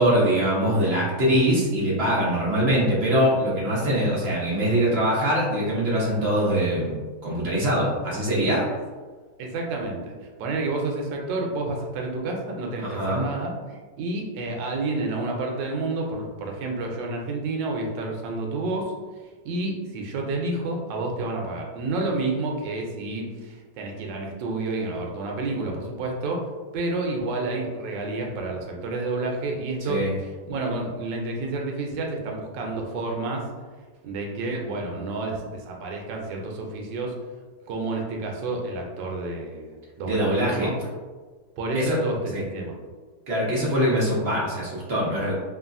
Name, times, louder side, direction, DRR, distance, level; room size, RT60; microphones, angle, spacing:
voice 1, 0.0-6.9 7.2-8.7 12.8-13.2 29.8-30.1 40.0-40.7 41.7-42.0 42.3-42.4 43.3-45.4, equal, 55° right, -6 dB, 0.7 m, -23 dB
voice 2, 9.4-10.1 10.4-18.9 19.4-26.5 26.7-30.0 30.5-33.4 34.0-37.1 37.7-39.7 40.0-40.7 41.6-42.2 42.5-42.8, right 2 dB, 85° right, 0 dB, 1.3 m, -29 dB
3.1 x 2.3 x 2.5 m, 1.4 s
omnidirectional pair, 1.9 m